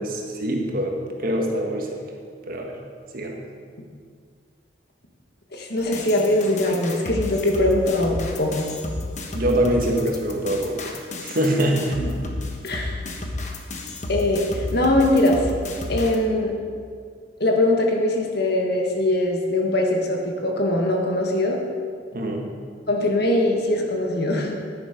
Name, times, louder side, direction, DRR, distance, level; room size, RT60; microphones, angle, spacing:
voice 1, 0.0-2.0 2.5-2.7 3.1-3.3 9.3-10.8 11.2-12.0 22.1-22.5, right 1 dB, 50° right, 1 dB, 1.5 m, -24 dB
voice 2, 5.5-8.7 12.0-12.1 12.6-12.9 14.1-15.4 15.9-16.5 17.4-21.6 22.9-24.5, left 1 dB, 60° left, 1 dB, 1.6 m, -21 dB
sound 1, 5.8-16.2, left 2 dB, 40° left, 1.2 m, -32 dB
10.5 x 9.0 x 5.2 m, 2.1 s
head